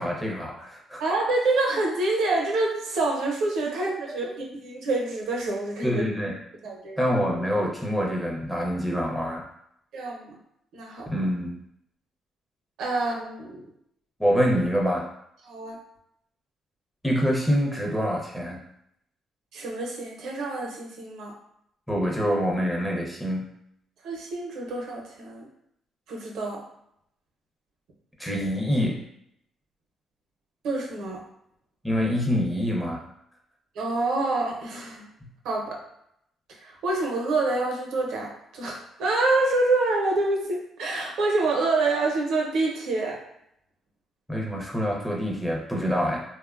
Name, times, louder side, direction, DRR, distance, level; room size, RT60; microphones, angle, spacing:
voice 1, 0.0-1.0 4.0-4.3 5.8-6.3 7.0-9.4 11.1-11.5 14.2-15.1 17.0-18.6 21.9-23.4 28.2-29.0 31.8-33.0 44.3-46.2, equal, 5° left, -2 dB, 0.6 m, -26 dB
voice 2, 1.0-6.0 6.6-7.0 9.9-10.4 10.7-11.1 12.8-13.6 15.4-15.8 19.5-21.3 24.0-25.5 26.1-26.6 30.6-31.2 33.8-35.0 35.4-35.8 36.6-43.2, right 2 dB, 80° right, -1 dB, 0.6 m, -27 dB
2.8 x 2.1 x 2.4 m, 0.75 s
cardioid pair, 90°, 0 cm